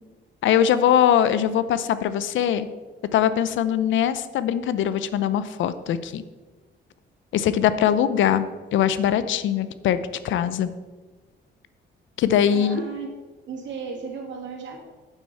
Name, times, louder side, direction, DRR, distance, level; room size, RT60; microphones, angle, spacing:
voice 1, 0.4-2.7 3.1-6.2 7.3-10.0 10.2-10.7 12.2-12.8, left 9 dB, 75° left, 13 dB, 0.6 m, -21 dB
voice 2, 12.5-13.1 13.5-14.8, right 5 dB, 70° right, 1 dB, 2.4 m, -35 dB
9.0 x 8.2 x 4.2 m, 1.3 s
cardioid pair, 90°, 20 cm